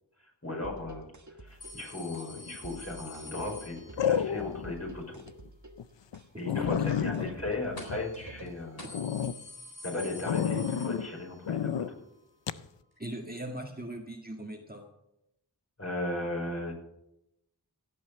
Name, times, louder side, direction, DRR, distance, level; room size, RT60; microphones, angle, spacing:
voice 1, 0.4-1.1 1.4-3.8 4.0-5.2 6.3-8.9 9.8-12.0 15.8-16.7, left 2 dB, 35° left, 0 dB, 5.0 m, -36 dB
sound 1, 0.6-8.6, right 2 dB, 45° right, 1.5 m, -50 dB
sound 2, 1.6-4.3 7.8-8.2 8.5-8.6 8.8-11.5 11.8-11.9 13.0-13.1, left 2 dB, 60° left, 4.0 m, -47 dB
sound 3, 2.4-2.8 4.0-4.7 5.2-5.3 5.8-5.9 6.1-6.2 6.5-8.5 8.9-9.4 10.3-11.1 11.5-11.9 12.5-12.7, left 8 dB, 90° left, 0.6 m, -30 dB
voice 2, 6.6-7.3 13.0-14.8, right 1 dB, 20° right, 1 dB, 1.8 m, -40 dB
17.0 x 7.8 x 6.8 m, 0.85 s
wide cardioid pair, 45°, 42 cm